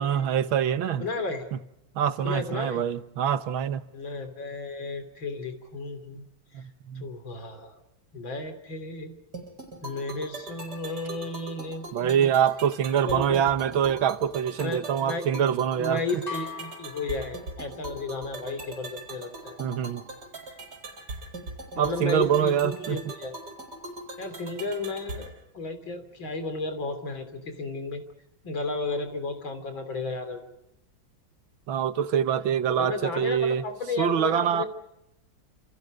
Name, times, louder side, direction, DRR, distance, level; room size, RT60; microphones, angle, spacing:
voice 1, 0.0-1.0 2.0-3.8 6.5-7.1 11.9-16.0 19.6-20.0 21.8-23.0 31.7-33.6 34.0-34.6, right 9 dB, 85° right, 1.9 m, -25 dB
voice 2, 1.0-1.5 2.2-2.8 3.9-6.2 6.5-6.7 7.0-7.7 8.1-9.1 9.8-12.3 13.0-13.4 14.6-15.2 15.8-19.6 21.7-23.3 24.2-28.0 28.4-30.5 32.8-34.6, left 3 dB, 75° left, 4.1 m, -33 dB
sound 1, 9.3-25.3, right 2 dB, 55° right, 5.6 m, -41 dB
sound 2, 16.3-18.0, left 5 dB, 55° left, 5.4 m, -40 dB
29.5 x 28.0 x 5.2 m
omnidirectional pair, 2.1 m